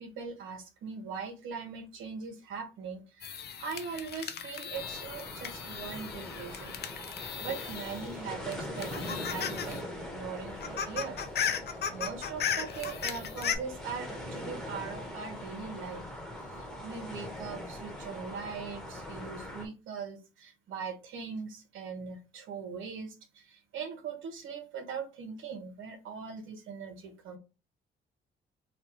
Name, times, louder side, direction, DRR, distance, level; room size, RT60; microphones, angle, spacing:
voice 1, 0.0-6.8 7.4-9.9 10.1-11.2 11.9-16.0 16.6-27.4, right 6 dB, 80° right, 5 dB, 1.1 m, -41 dB
sound 1, 3.2-8.2 8.5-9.8 10.1-10.2 10.5-13.6, left 8 dB, 55° left, 0.6 m, -36 dB
sound 2, 4.7-19.7, left 1 dB, ahead, 1.1 m, -42 dB
3.2 x 2.2 x 4.3 m, 0.29 s
cardioid pair, 90°, 20 cm